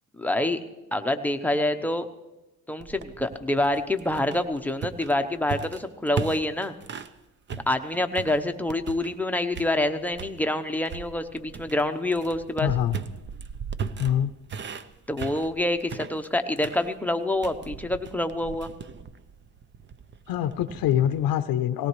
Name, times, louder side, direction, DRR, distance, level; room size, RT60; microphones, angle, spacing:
voice 1, 0.2-0.6 0.9-2.1 2.7-6.8 7.7-12.7 15.1-18.7, left 1 dB, 5° left, 7 dB, 0.8 m, -26 dB
sound 1, 2.8-7.2 7.5-9.2 9.5-10.4 10.8-21.3, right 6 dB, 30° right, 0.6 m, -38 dB
voice 2, 12.6-13.0 14.0-14.3 20.3-21.9, left 11 dB, 80° left, 10 dB, 0.7 m, -24 dB
19.0 x 17.5 x 3.1 m, 1.0 s
cardioid pair, 125°, 35 cm